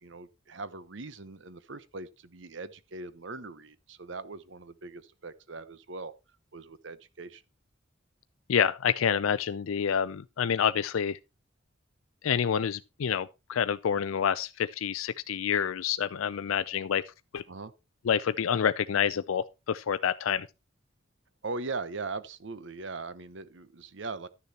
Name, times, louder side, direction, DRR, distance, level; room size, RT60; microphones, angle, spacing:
voice 1, 0.0-6.1 6.5-7.4 17.5-17.7 21.4-24.3, right 3 dB, 65° right, 0.9 m, -40 dB
voice 2, 8.5-11.2 12.2-17.0 17.3-17.4 18.1-20.5, left 8 dB, 90° left, 0.4 m, -28 dB
12.0 x 6.9 x 4.2 m
head